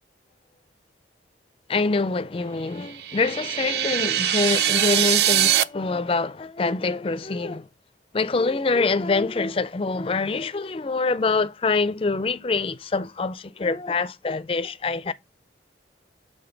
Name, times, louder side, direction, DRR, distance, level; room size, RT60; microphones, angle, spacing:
voice 1, 1.7-7.7 8.1-15.1, left 3 dB, 30° left, 0.4 m, -25 dB
sound 1, 2.9-5.6, right 11 dB, 60° right, 0.4 m, -22 dB
6.9 x 3.6 x 3.9 m
head